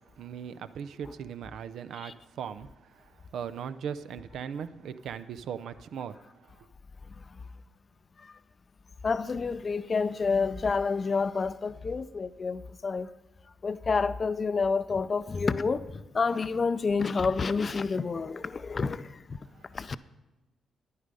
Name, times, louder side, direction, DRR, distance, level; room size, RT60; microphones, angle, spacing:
voice 1, 0.2-6.7 19.5-19.7, right 8 dB, 75° right, 0.5 m, -39 dB
voice 2, 9.0-13.1 13.6-19.4 19.7-20.0, left 4 dB, 45° left, 0.5 m, -29 dB
9.9 x 9.5 x 5.3 m
hypercardioid pair, 45°, 0 cm